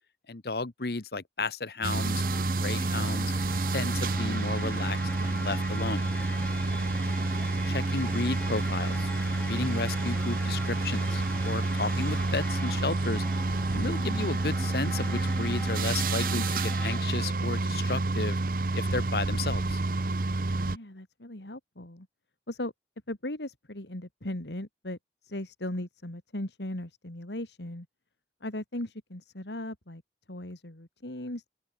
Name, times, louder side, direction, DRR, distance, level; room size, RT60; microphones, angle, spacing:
voice 1, 0.3-3.3 3.7-6.0 7.5-9.1 9.4-13.2 13.7-18.4 18.7-19.8, left 3 dB, 65° left, 1.1 m, -33 dB
sound 1, 1.8-20.8, right 2 dB, 50° right, 0.8 m, -29 dB
sound 2, 1.9-17.0, left 1 dB, 10° left, 2.4 m, -41 dB
sound 3, 2.6-12.2, right 2 dB, 15° right, 6.7 m, -48 dB
voice 2, 20.6-22.1 22.5-22.7 23.1-25.0 25.2-27.9 28.4-30.0 30.3-31.5, left 1 dB, 85° left, 2.9 m, -38 dB
open air
head